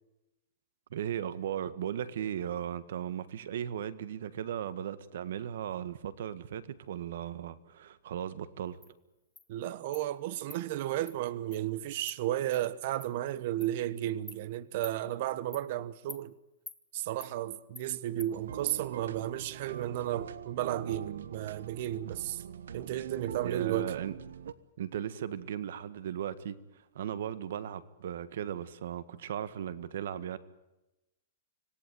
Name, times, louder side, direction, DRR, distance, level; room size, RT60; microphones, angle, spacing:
voice 1, 0.9-8.8 23.4-24.1 24.8-30.4, right 9 dB, 65° right, 1.6 m, -37 dB
Insect, 8.8-8.9 9.4-9.5 9.9-10.0 10.5-10.6 11.1-11.2 11.5-11.6 12.1-12.2 12.5-12.6 13.0-13.1 13.6-13.7 14.3-14.4 14.8-15.0 15.5-15.7 16.1-16.2 16.7-16.8 17.2-17.3 17.7-17.9 18.2-18.3, left 3 dB, 5° left, 1.2 m, -47 dB
voice 2, 9.5-16.3 16.9-22.4 22.7-23.9, right 13 dB, 45° right, 1.1 m, -33 dB
sound 1, 18.3-24.5, right 8 dB, 85° right, 1.2 m, -43 dB
26.0 x 17.5 x 9.4 m
hypercardioid pair, 160°, 0 cm